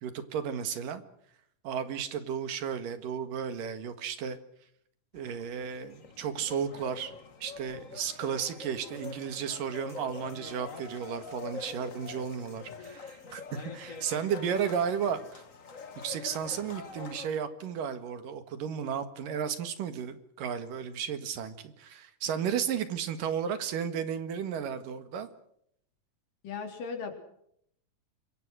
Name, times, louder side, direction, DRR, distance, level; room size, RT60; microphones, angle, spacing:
voice 1, 0.0-1.0 1.6-4.4 5.1-7.1 7.4-15.4 16.0-25.3, right 7 dB, 75° right, 10 dB, 3.4 m, -34 dB
sound 1, 5.1-17.3, left 4 dB, 40° left, 1.2 m, -45 dB
voice 2, 26.4-27.1, left 5 dB, 75° left, 5 dB, 5.1 m, -36 dB
26.0 x 23.0 x 6.3 m, 0.71 s
omnidirectional pair, 3.9 m